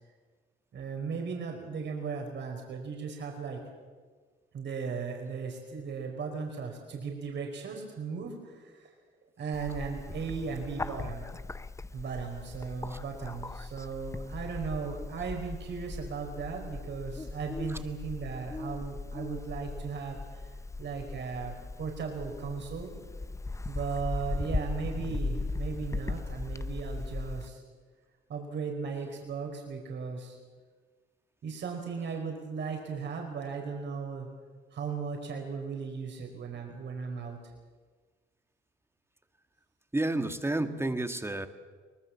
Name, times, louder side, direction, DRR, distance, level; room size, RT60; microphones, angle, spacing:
voice 1, 0.7-3.6 4.5-8.9 9.4-11.3 11.9-20.5 20.8-21.5 21.8-22.9 23.7-27.6 28.3-30.4 31.4-34.3 34.7-37.4, right 5 dB, 65° right, 2 dB, 4.8 m, -37 dB
Bird, 9.5-27.5, left 3 dB, 15° left, 0.7 m, -38 dB
voice 2, 39.9-41.5, right 2 dB, 10° right, 8 dB, 1.7 m, -30 dB
23.5 x 20.0 x 7.3 m, 1.5 s
cardioid pair, 90°, 20 cm